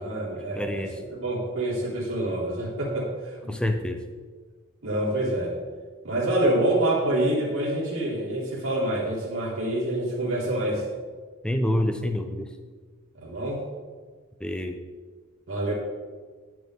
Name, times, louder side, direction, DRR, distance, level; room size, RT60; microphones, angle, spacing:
voice 1, 0.0-3.5 4.8-5.5 6.0-10.8 13.2-13.6 15.5-15.7, right 1 dB, 60° right, -4 dB, 1.3 m, -27 dB
voice 2, 0.6-1.0 3.5-4.0 11.4-12.5 14.4-14.8, left 1 dB, 5° left, 6 dB, 0.5 m, -27 dB
9.5 x 6.1 x 3.5 m, 1.5 s
head